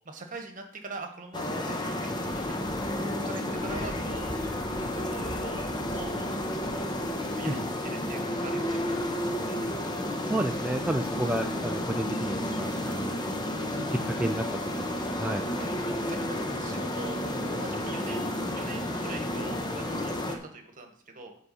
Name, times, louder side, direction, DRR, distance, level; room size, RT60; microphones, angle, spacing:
voice 1, 0.0-2.6 3.2-4.3 5.0-5.7 5.9-6.3 7.3-10.0 13.5-13.6 15.6-15.7 16.0-17.2 17.5-18.2 18.5-21.3, right 3 dB, 40° right, 4 dB, 1.4 m, -43 dB
sound 1, 1.3-20.4, left 1 dB, 20° left, 0.9 m, -31 dB
voice 2, 10.3-14.4 14.8-15.4, right 1 dB, 5° right, 3 dB, 0.4 m, -31 dB
7.8 x 4.8 x 6.9 m, 0.63 s
head